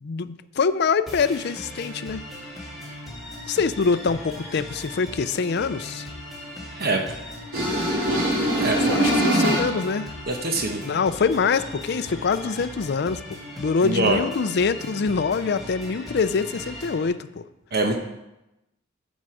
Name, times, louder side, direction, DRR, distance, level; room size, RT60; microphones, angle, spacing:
voice 1, 0.0-2.2 3.5-6.1 8.9-10.1 10.8-17.4, left 5 dB, 55° left, 12 dB, 0.4 m, -24 dB
sound 1, 1.1-17.0, left 1 dB, ahead, 2.3 m, -39 dB
sound 2, 7.5-10.0, right 1 dB, 85° right, 3.1 m, -22 dB
voice 2, 10.3-10.8 13.8-14.2 17.7-18.0, right 2 dB, 50° right, 3 dB, 0.9 m, -23 dB
10.0 x 6.4 x 4.9 m, 0.95 s
head